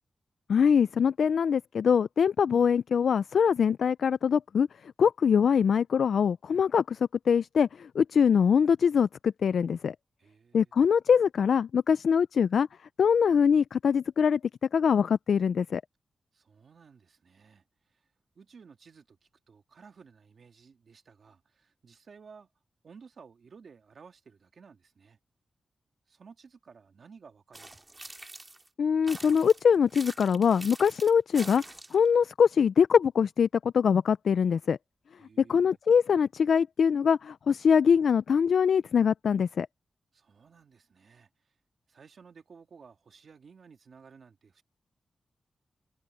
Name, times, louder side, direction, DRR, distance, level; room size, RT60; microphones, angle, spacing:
voice 1, 0.5-4.7 5.0-7.0 7.3-9.9 10.5-12.7 13.0-14.4 14.7-15.8 28.8-31.6 31.9-34.8 35.5-39.7, left 7 dB, 75° left, 0.3 m, -23 dB
voice 2, 10.2-10.7 16.3-18.0 18.3-19.2 19.5-22.5 22.8-25.2 26.1-28.1 35.2-35.8 40.1-41.5 41.9-44.6, right 5 dB, 55° right, 2.8 m, -55 dB
sound 1, 27.5-28.7 29.1-32.1, right 2 dB, 20° right, 2.0 m, -45 dB
wide cardioid pair, 175°, 0 cm